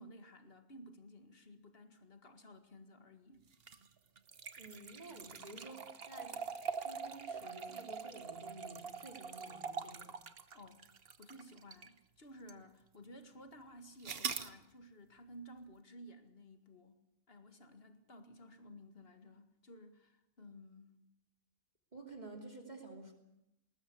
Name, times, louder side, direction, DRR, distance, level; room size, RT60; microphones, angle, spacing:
voice 1, 0.0-3.5 10.5-10.8 11.2-17.0 17.3-21.0, equal, 45° left, 2.2 m, -55 dB
sound 1, 3.5-12.0 12.5-12.6 14.0-14.5, right 5 dB, 50° right, 1.3 m, -44 dB
voice 2, 4.6-6.4 6.8-10.1 21.9-23.1, right 2 dB, 30° right, 3.0 m, -51 dB
20.5 x 19.5 x 8.4 m
omnidirectional pair, 1.4 m